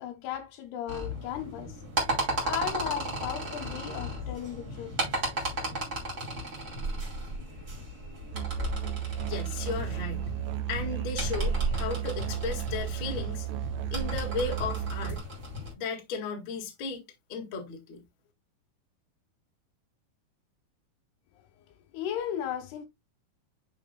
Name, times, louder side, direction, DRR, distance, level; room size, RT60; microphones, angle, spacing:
voice 1, 0.0-1.8 2.4-5.0 21.9-22.9, left 10 dB, 75° left, 2.8 m, -35 dB
sound 1, 0.9-15.7, right 1 dB, 25° right, 2.5 m, -34 dB
Musical instrument, 8.3-15.2, right 14 dB, 85° right, 2.6 m, -34 dB
voice 2, 9.3-10.2 10.7-13.5 13.9-15.2 15.8-17.0 17.3-18.0, left 4 dB, 50° left, 1.4 m, -35 dB
9.2 x 5.0 x 2.2 m
omnidirectional pair, 4.9 m